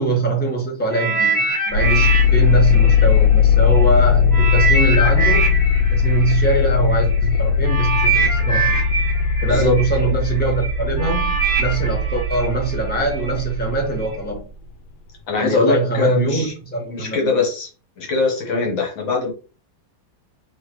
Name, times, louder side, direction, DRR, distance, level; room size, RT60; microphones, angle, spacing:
voice 1, 0.0-5.6 5.9-8.8 9.4-11.3 11.6-14.4 15.3-17.4, right 3 dB, 5° left, 1.1 m, -23 dB
sound 1, 0.9-3.8 4.3-13.3 14.0-14.1, right 4 dB, 45° left, 2.3 m, -24 dB
sound 2, 1.7-14.4, left 6 dB, 90° left, 1.5 m, -18 dB
voice 2, 15.3-16.5 16.9-17.7 18.0-19.3, left 3 dB, 70° left, 2.0 m, -21 dB
4.9 x 3.5 x 3.1 m
omnidirectional pair, 2.2 m